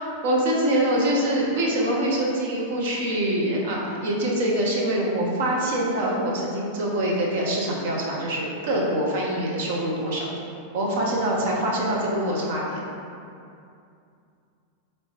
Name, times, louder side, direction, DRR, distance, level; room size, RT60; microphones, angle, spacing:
voice 1, 0.0-10.3 10.7-12.9, right 1 dB, 55° right, -3 dB, 0.7 m, -24 dB
4.5 x 3.1 x 2.9 m, 2.5 s
figure-of-eight pair, 90°, 0 cm